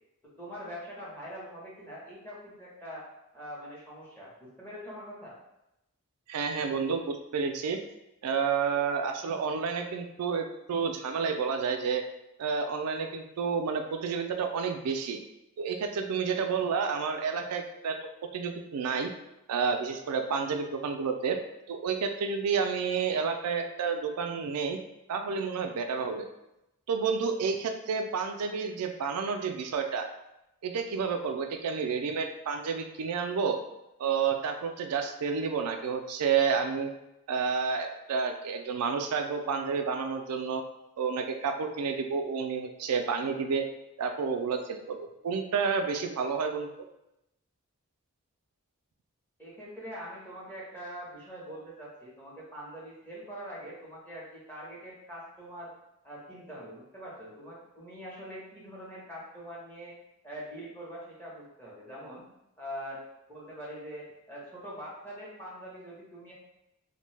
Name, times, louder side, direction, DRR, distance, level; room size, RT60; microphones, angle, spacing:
voice 1, 0.4-3.1 3.3-5.3 49.4-55.7 56.0-60.0 60.2-62.2 62.6-63.0 63.3-66.3, equal, 10° left, -7 dB, 0.8 m, -43 dB
voice 2, 6.3-7.8 8.2-12.0 12.4-15.2 15.6-18.0 18.3-19.1 19.5-21.4 21.7-24.8 25.1-26.3 26.9-30.1 30.6-33.6 34.0-36.9 37.3-40.6 41.0-43.6 44.0-46.7, right 5 dB, 90° right, 5 dB, 0.4 m, -30 dB
2.7 x 2.1 x 3.2 m, 0.88 s
head